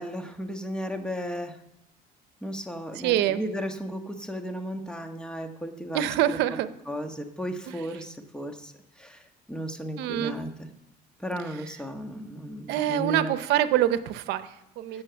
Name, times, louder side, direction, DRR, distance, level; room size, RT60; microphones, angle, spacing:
voice 1, 0.0-1.6 2.4-6.4 6.9-10.7 11.2-13.3 14.9-15.0, equal, 5° left, 6 dB, 1.3 m, -35 dB
voice 2, 3.0-3.4 5.9-6.7 7.7-7.8 10.0-10.4 12.7-15.0, right 12 dB, 90° right, 13 dB, 0.7 m, -25 dB
15.5 x 6.5 x 7.0 m, 0.87 s
cardioid pair, 110°, 17 cm